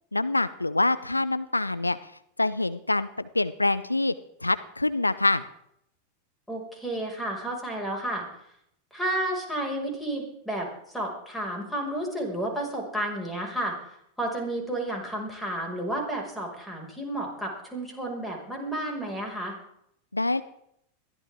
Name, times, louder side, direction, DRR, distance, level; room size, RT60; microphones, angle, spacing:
voice 1, 0.1-2.1 2.4-4.1 4.4-5.5 20.1-20.4, left 2 dB, 85° left, 14 dB, 0.6 m, -25 dB
voice 2, 6.5-8.2 8.9-13.7 14.2-19.6, right 1 dB, 5° left, 0 dB, 6.0 m, -31 dB
22.0 x 15.0 x 3.7 m, 0.73 s
figure-of-eight pair, 90°, 0 cm